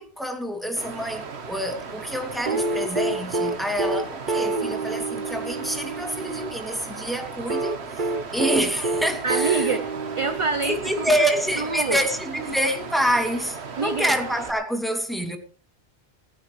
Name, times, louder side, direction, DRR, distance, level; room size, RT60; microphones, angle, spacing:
voice 1, 0.0-9.8 10.6-15.4, equal, ahead, 2.5 m, -27 dB
Water, 0.8-14.5, right 5 dB, 85° right, 1.5 m, -37 dB
sound 1, 2.5-6.5 7.5-11.1 12.5-12.6, right 3 dB, 50° right, 1.3 m, -27 dB
voice 2, 9.2-9.8 10.2-11.1 11.6-12.0 13.8-14.1, right 4 dB, 35° right, 0.7 m, -26 dB
18.5 x 15.5 x 3.2 m
omnidirectional pair, 1.1 m